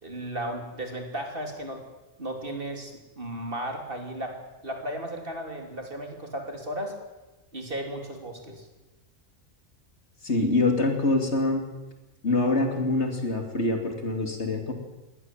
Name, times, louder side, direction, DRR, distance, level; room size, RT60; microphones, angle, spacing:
voice 1, 0.0-1.8 2.2-4.4 4.6-6.9 7.5-8.7, right 1 dB, 40° right, 3 dB, 3.4 m, -35 dB
voice 2, 10.2-11.6 12.2-14.7, left 2 dB, 55° left, 4 dB, 3.3 m, -25 dB
22.0 x 18.0 x 7.6 m, 1.1 s
omnidirectional pair, 1.4 m